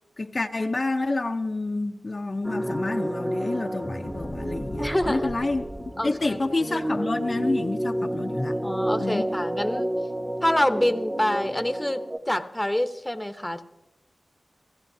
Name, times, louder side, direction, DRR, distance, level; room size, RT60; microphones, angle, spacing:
voice 1, 0.2-8.6 9.0-9.3, left 2 dB, 45° left, 0.7 m, -28 dB
sound 1, 2.4-12.2, right 1 dB, 15° right, 0.9 m, -30 dB
voice 2, 4.8-5.3 6.0-6.4 8.6-9.9 10.4-13.6, left 1 dB, 10° left, 0.9 m, -26 dB
29.0 x 16.0 x 2.7 m
wide cardioid pair, 75°, 0 cm